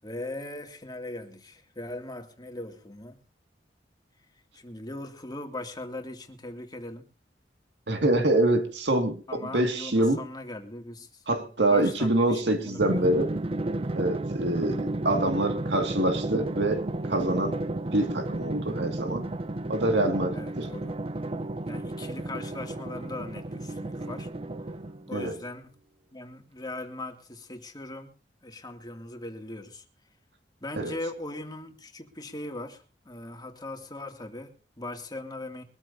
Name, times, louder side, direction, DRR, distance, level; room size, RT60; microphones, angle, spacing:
voice 1, 0.0-3.2 4.5-7.1 9.3-11.2 11.7-13.1 20.3-20.9 21.7-24.3 25.1-25.7 26.1-28.1 28.4-29.8 30.6-35.6, left 2 dB, 25° left, 2.4 m, -39 dB
voice 2, 7.9-10.2 11.3-13.3 13.9-17.6 17.9-19.2 19.7-20.7 25.1-25.4 30.8-30.9, right 1 dB, 85° right, 2.1 m, -25 dB
Drum, 12.8-25.2, right 2 dB, 35° right, 0.7 m, -33 dB
23.0 x 14.0 x 2.7 m
head